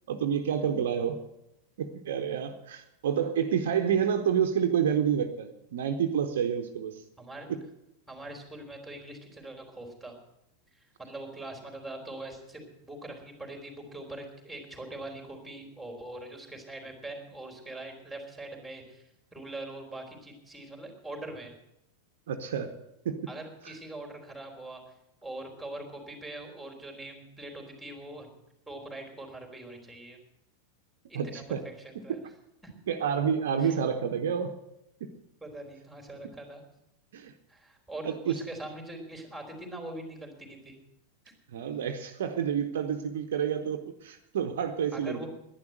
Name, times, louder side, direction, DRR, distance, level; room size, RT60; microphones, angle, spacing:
voice 1, 0.1-1.2 1.8-7.0 7.5-7.6 22.3-22.7 23.0-23.3 23.6-23.7 31.1-31.6 32.9-34.5 35.0-35.1 37.1-37.3 38.0-38.4 41.5-45.3, right 8 dB, 60° right, 6 dB, 1.0 m, -29 dB
voice 2, 7.2-7.5 8.1-10.1 10.8-19.0 19.3-21.5 23.3-24.9 25.2-28.3 28.7-30.2 31.1-31.4 31.8-32.2 32.6-32.8 33.6-33.8 35.4-36.6 37.5-40.8 41.2-41.3 44.9-45.3, right 2 dB, ahead, 2 dB, 3.5 m, -42 dB
11.0 x 11.0 x 7.8 m, 0.85 s
figure-of-eight pair, 90°, 0 cm